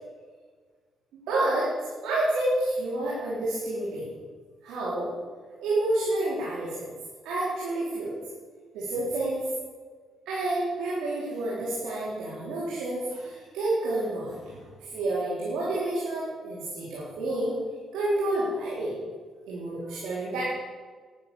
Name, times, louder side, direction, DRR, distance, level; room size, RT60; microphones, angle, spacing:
voice 1, 1.3-1.7 2.0-4.1 4.6-5.1 5.6-6.9 7.2-8.2 8.7-9.5 10.3-14.6 14.9-17.6 17.9-18.9 19.5-20.4, right 2 dB, 85° right, -6 dB, 4.1 m, -29 dB
12.0 x 10.5 x 7.1 m, 1.5 s
cardioid pair, 90°, 0 cm